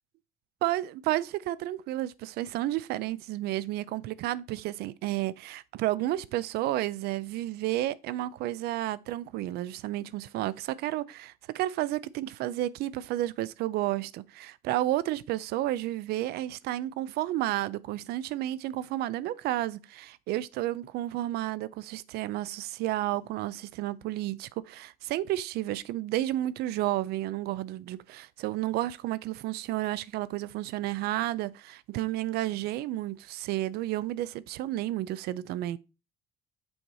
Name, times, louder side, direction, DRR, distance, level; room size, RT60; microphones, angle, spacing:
voice 1, 0.6-35.8, right 15 dB, 85° right, 0.5 m, -31 dB
6.4 x 4.7 x 4.1 m
cardioid pair, 175°, 16 cm